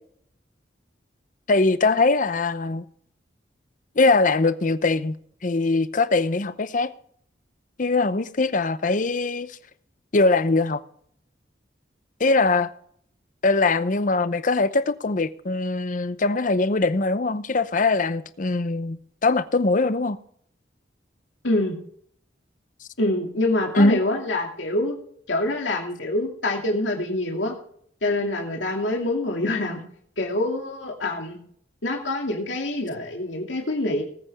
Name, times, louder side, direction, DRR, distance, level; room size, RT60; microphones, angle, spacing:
voice 1, 1.5-2.9 4.0-5.2 5.4-6.9 7.8-9.6 10.1-10.8 12.2-12.7 13.4-20.2 23.8-24.0, left 3 dB, 45° left, 0.7 m, -21 dB
voice 2, 21.4-21.7 23.0-24.9 25.3-27.5 28.0-29.8 30.2-31.4 31.8-34.0, left 2 dB, 90° left, 2.5 m, -25 dB
19.5 x 8.7 x 3.5 m
head